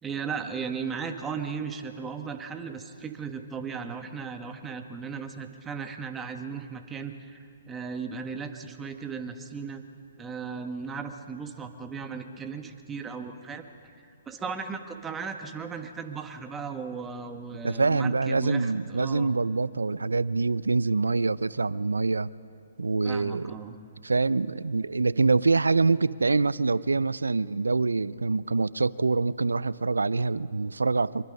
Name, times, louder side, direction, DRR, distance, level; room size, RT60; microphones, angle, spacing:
voice 1, 0.0-9.8 10.2-13.6 14.3-19.3 23.0-23.8, right 5 dB, 15° right, 6 dB, 1.5 m, -36 dB
voice 2, 17.6-22.3 22.8-23.5 24.0-31.2, right 3 dB, 85° right, 19 dB, 0.5 m, -25 dB
25.5 x 23.0 x 5.4 m, 2.6 s
hypercardioid pair, 130°, 0 cm